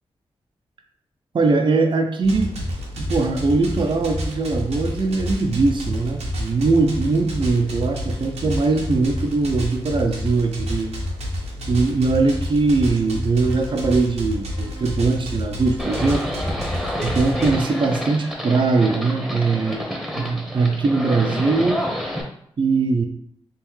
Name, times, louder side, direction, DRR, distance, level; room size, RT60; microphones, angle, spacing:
voice 1, 1.3-2.7 3.0-10.9 11.7-16.3 17.0-19.9 20.2-21.8 22.6-23.0, right 3 dB, 50° right, 4 dB, 0.5 m, -21 dB
sound 1, 2.2-17.5, left 1 dB, 80° right, 0.9 m, -29 dB
sound 2, 13.4-14.1 14.5-15.2 15.6-16.3 16.7-18.3, left 2 dB, 40° left, 1.2 m, -42 dB
Livestock farm animals working animals, 15.8-22.2, equal, ahead, 0.9 m, -29 dB
3.5 x 3.0 x 3.1 m, 0.68 s
cardioid pair, 55°, 11 cm